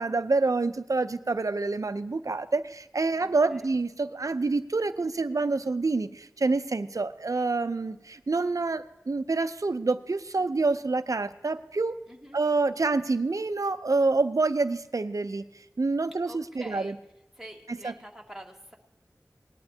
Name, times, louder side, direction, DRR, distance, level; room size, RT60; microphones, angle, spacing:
voice 1, 0.0-12.0 12.3-15.4 15.8-17.0 17.7-17.9, right 3 dB, 65° right, 11 dB, 0.6 m, -27 dB
voice 2, 3.2-3.7 12.1-12.4 16.3-16.9 17.4-18.8, right 1 dB, 5° right, 0 dB, 1.8 m, -46 dB
19.0 x 11.0 x 2.8 m, 0.96 s
wide cardioid pair, 50°, 6 cm